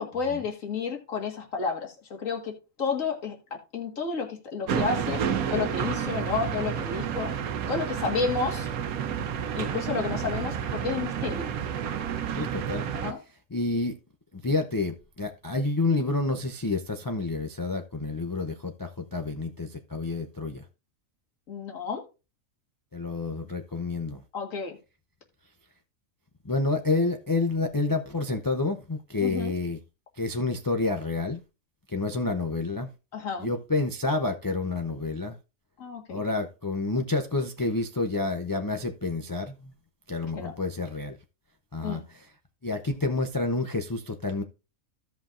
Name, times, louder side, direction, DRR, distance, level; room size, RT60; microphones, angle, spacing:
voice 1, 0.0-1.9 2.2-2.5 2.8-3.4 3.7-5.2 5.5-7.3 7.7-8.7 9.5-11.5 12.9-13.2 21.5-22.0 24.3-24.8 29.2-29.5 33.1-33.5 35.8-36.2 40.3-40.5 41.8-42.0, left 5 dB, 65° left, 2.1 m, -31 dB
sound 1, 4.7-13.1, right 8 dB, 90° right, 1.2 m, -30 dB
voice 2, 12.3-12.9 13.5-14.0 14.3-20.6 22.9-24.2 26.4-29.8 30.2-31.4 31.9-32.9 33.4-35.4 36.1-39.7 40.1-41.2 41.7-42.3 42.6-44.4, left 3 dB, 35° left, 0.3 m, -29 dB
15.5 x 5.7 x 2.5 m
omnidirectional pair, 1.5 m